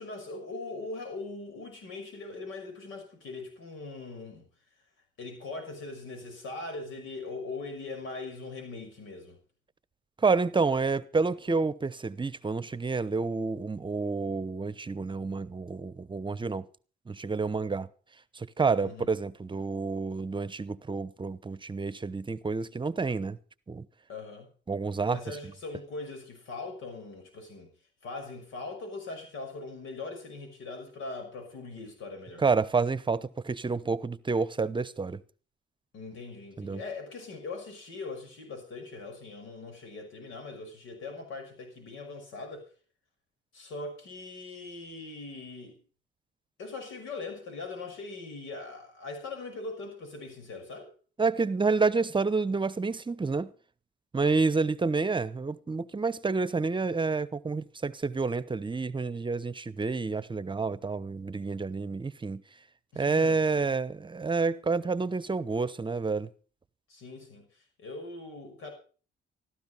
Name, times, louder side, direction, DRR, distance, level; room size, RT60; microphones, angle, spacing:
voice 1, 0.0-4.5 5.2-9.4 18.8-19.1 24.1-24.5 25.1-27.7 28.0-32.4 35.9-42.7 43.5-45.8 46.6-50.9 62.9-63.7 66.9-67.5 67.8-68.7, left 3 dB, 85° left, 6.0 m, -41 dB
voice 2, 10.2-16.7 17.1-17.9 18.3-23.4 23.7-23.9 24.7-25.4 32.4-35.2 36.6-36.8 51.2-53.5 54.1-62.4 63.0-66.3, right 4 dB, 25° right, 0.9 m, -29 dB
15.0 x 13.0 x 5.6 m
cardioid pair, 90°, 20 cm